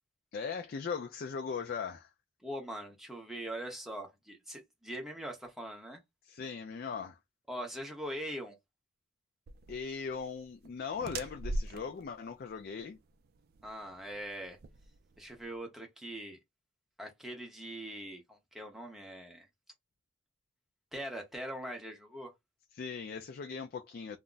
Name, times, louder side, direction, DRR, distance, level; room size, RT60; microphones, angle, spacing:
voice 1, 0.3-2.1 6.2-7.2 9.7-13.0 22.7-24.2, left 5 dB, 50° left, 0.3 m, -39 dB
voice 2, 2.4-6.0 7.5-8.6 13.6-14.6 15.2-16.4 17.0-19.5 20.9-22.3, right 1 dB, ahead, 0.7 m, -42 dB
sound 1, 9.5-15.6, right 2 dB, 50° right, 0.3 m, -42 dB
2.3 x 2.0 x 3.8 m
head